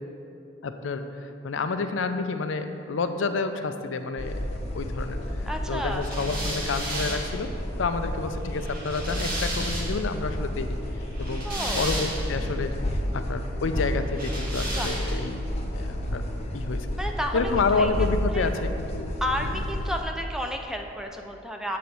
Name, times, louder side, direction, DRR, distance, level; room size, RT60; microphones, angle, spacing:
voice 1, 0.6-1.1 1.4-4.4 4.7-7.5 7.8-10.8 11.2-11.5 11.7-12.7 13.1-15.4 15.7-16.2 16.5-16.9 17.3-19.1 19.4-19.5, left 4 dB, 75° left, 8 dB, 0.5 m, -29 dB
sound 1, 4.2-20.0, equal, 35° left, 0.8 m, -31 dB
voice 2, 5.5-6.1 11.4-11.8 14.8-14.9 17.0-17.9 18.3-18.5 19.2-21.8, equal, 5° right, 3 dB, 0.4 m, -32 dB
sound 2, 6.0-10.1 11.0-12.5 14.1-15.4, right 1 dB, 50° right, 1.7 m, -34 dB
7.7 x 4.1 x 6.8 m, 2.7 s
head